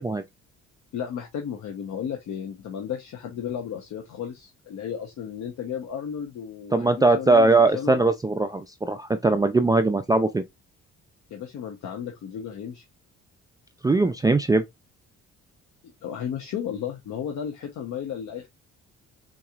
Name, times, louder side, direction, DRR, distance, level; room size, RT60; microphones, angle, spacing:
voice 1, 0.9-8.0 11.3-12.8 16.0-18.5, left 8 dB, 70° left, 0.8 m, -34 dB
voice 2, 6.7-10.4 13.8-14.6, right 3 dB, 15° right, 0.3 m, -20 dB
3.9 x 3.0 x 2.3 m
cardioid pair, 90°, 30 cm